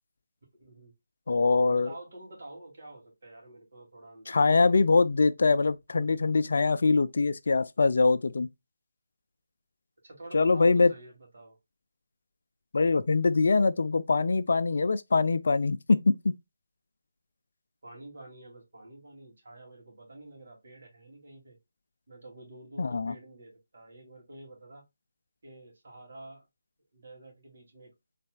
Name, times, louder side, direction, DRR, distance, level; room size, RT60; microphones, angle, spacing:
voice 1, 0.5-0.9 1.7-5.0 10.0-11.6 17.8-21.6 22.1-24.9 25.4-26.5 26.9-27.9, right 2 dB, 60° right, 2.4 m, -49 dB
voice 2, 1.3-1.9 4.3-8.5 10.3-10.9 12.7-16.3 22.8-23.1, left 3 dB, 60° left, 0.4 m, -23 dB
4.2 x 3.3 x 2.2 m
figure-of-eight pair, 155°, 0 cm